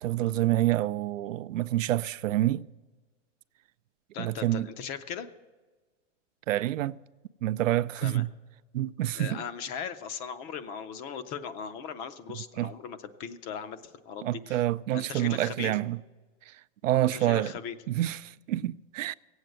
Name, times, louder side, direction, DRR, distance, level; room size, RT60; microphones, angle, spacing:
voice 1, 0.0-2.7 4.2-4.7 6.5-7.0 7.4-8.3 8.7-9.4 12.6-12.7 14.2-16.0 16.5-16.6 16.8-17.5 17.9-19.1, right 14 dB, 85° right, 0.5 m, -27 dB
voice 2, 4.1-5.3 8.0-8.2 9.1-14.6 14.9-15.7 17.0-17.8, left 7 dB, 25° left, 0.5 m, -38 dB
16.5 x 8.0 x 7.6 m
hypercardioid pair, 145°, 38 cm